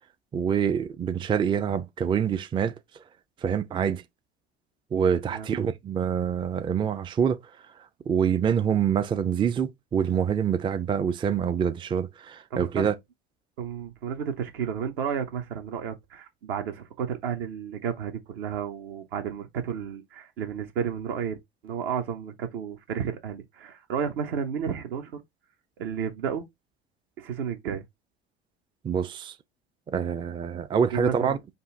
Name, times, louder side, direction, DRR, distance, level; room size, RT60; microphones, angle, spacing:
voice 1, 0.3-2.8 3.4-4.0 4.9-7.4 8.1-12.9 28.8-29.4 29.9-31.4, right 7 dB, 15° right, 0.4 m, -26 dB
voice 2, 12.5-12.9 13.6-21.4 21.6-25.2 25.8-26.5 27.2-27.8 30.9-31.4, right 7 dB, 65° right, 0.9 m, -32 dB
5.3 x 2.5 x 3.8 m
figure-of-eight pair, 65°, 32 cm